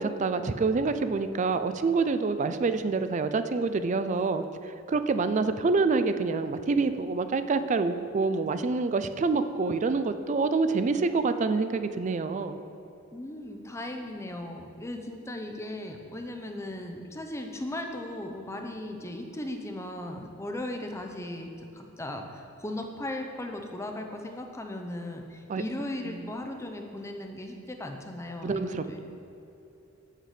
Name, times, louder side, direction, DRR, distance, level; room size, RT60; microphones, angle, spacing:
voice 1, 0.0-12.6 25.5-25.6 26.1-26.3 28.4-29.0, right 4 dB, 35° right, 10 dB, 0.3 m, -27 dB
voice 2, 13.1-29.0, left 1 dB, 15° left, 4 dB, 0.6 m, -37 dB
7.6 x 6.5 x 4.9 m, 2.9 s
head